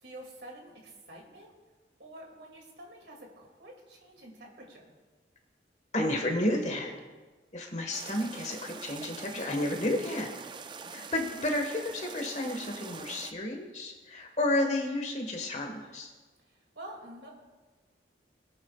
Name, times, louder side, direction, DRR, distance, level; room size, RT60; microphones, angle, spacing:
voice 1, 0.0-1.5 2.0-4.9 16.5-17.3, right 1 dB, 70° right, 0 dB, 2.5 m, -48 dB
voice 2, 5.9-6.9 7.5-10.3 10.9-16.1, left 1 dB, 40° left, 3 dB, 1.6 m, -31 dB
sound 1, 7.9-13.3, right 5 dB, 25° right, 0.3 m, -44 dB
22.5 x 8.7 x 2.4 m, 1.3 s
head